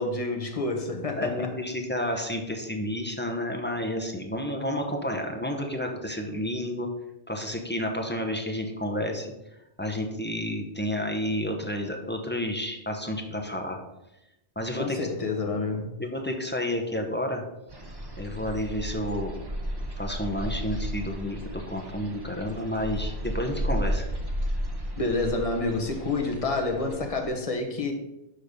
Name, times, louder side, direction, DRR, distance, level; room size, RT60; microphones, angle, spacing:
voice 1, 0.0-1.6 14.8-15.9 25.0-27.9, left 3 dB, 35° left, 3 dB, 1.1 m, -28 dB
voice 2, 1.2-6.9 7.3-9.3 9.8-13.8 14.6-15.0 16.0-17.4 18.2-19.4 20.0-24.1, left 1 dB, 10° left, 1 dB, 0.7 m, -30 dB
sound 1, 17.7-27.3, equal, 25° right, 0.9 m, -33 dB
6.6 x 5.0 x 5.2 m, 0.94 s
omnidirectional pair, 1.1 m